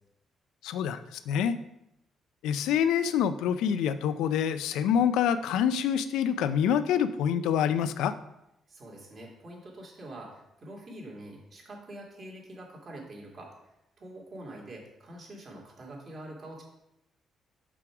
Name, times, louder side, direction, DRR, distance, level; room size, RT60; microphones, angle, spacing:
voice 1, 0.6-1.6 2.4-8.1, left 8 dB, 90° left, 13 dB, 0.4 m, -26 dB
voice 2, 8.7-13.7 14.0-16.6, right 1 dB, 45° right, -2 dB, 2.6 m, -45 dB
6.1 x 4.6 x 5.9 m, 0.86 s
cardioid pair, 90°, 0 cm